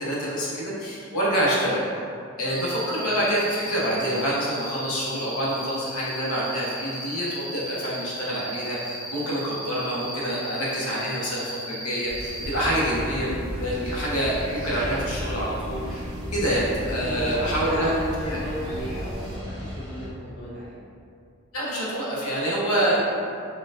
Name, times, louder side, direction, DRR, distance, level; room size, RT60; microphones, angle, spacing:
voice 1, 0.0-1.8 2.4-13.3 13.6-16.0 16.3-17.9 18.3-18.4 21.5-23.0, right 1 dB, 85° left, -6 dB, 0.9 m, -26 dB
Cricket, 2.5-12.5, equal, 40° right, 1.0 m, -36 dB
sound 1, 12.0-19.4, equal, 65° right, 0.8 m, -36 dB
sound 2, 12.4-20.1, left 1 dB, 20° right, 1.3 m, -37 dB
voice 2, 16.7-20.7 23.0-23.1, equal, 50° left, -9 dB, 0.6 m, -34 dB
4.3 x 2.3 x 2.4 m, 2.4 s
head